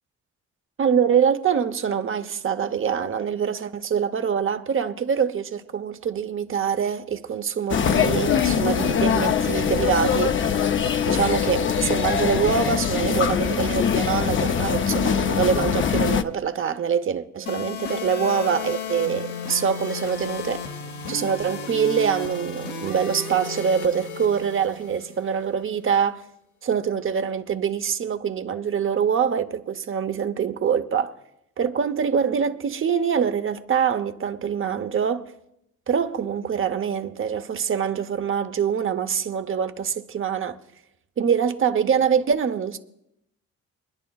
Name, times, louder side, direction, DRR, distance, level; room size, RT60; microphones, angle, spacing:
voice 1, 0.8-10.4 11.1-20.7 21.1-26.2 26.6-31.1 31.6-35.3 35.9-40.6 41.2-42.8, right 7 dB, 45° right, 0.8 m, -24 dB
sound 1, 7.7-16.2, left 8 dB, 40° left, 0.6 m, -22 dB
sound 2, 17.5-25.4, left 5 dB, 70° left, 1.1 m, -34 dB
25.5 x 10.0 x 2.4 m
cardioid pair, 90°, 30 cm